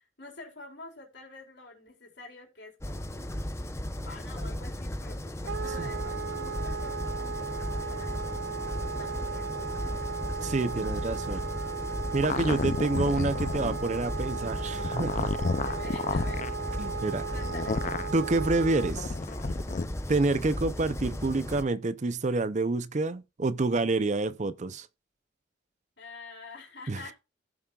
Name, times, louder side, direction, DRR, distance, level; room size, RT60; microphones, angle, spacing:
voice 1, 0.0-3.4 4.0-9.9 15.6-16.7 17.3-17.9 26.0-27.1, left 3 dB, 70° left, 4.2 m, -48 dB
sound 1, 2.8-21.6, left 1 dB, 15° left, 0.7 m, -36 dB
Wind instrument woodwind instrument, 5.5-18.9, right 5 dB, 80° right, 0.6 m, -36 dB
voice 2, 10.4-11.4 12.1-15.3 16.8-17.3 18.1-19.1 20.1-24.9 26.9-27.0, right 3 dB, 40° right, 0.5 m, -28 dB
sound 2, 12.2-13.8 14.7-16.5 17.4-18.1 18.9-19.9, left 4 dB, 40° left, 0.4 m, -31 dB
15.0 x 7.3 x 2.4 m
head